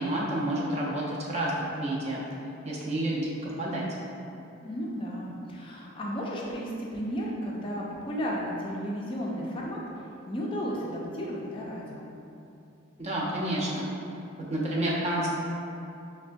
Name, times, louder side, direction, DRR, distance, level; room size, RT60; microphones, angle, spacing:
voice 1, 0.0-1.5 1.8-2.2 2.6-3.9 13.0-13.9 14.5-15.3, right 1 dB, 30° right, -5 dB, 0.5 m, -29 dB
voice 2, 4.6-9.8 10.3-12.1, equal, 25° left, -3 dB, 0.4 m, -33 dB
5.3 x 2.1 x 2.6 m, 2.8 s
head